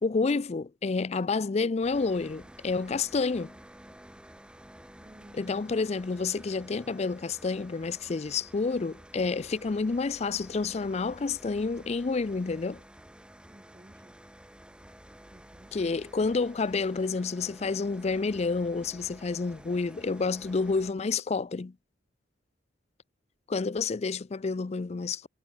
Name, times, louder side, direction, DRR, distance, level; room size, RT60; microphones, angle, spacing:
voice 1, 0.0-3.5 5.3-12.8 15.7-21.7 23.5-25.3, left 4 dB, 35° left, 0.4 m, -29 dB
sound 1, 1.8-20.9, equal, 5° right, 4.6 m, -51 dB
voice 2, 5.0-5.7 13.5-14.2 15.3-16.1, right 1 dB, 25° right, 0.9 m, -55 dB
head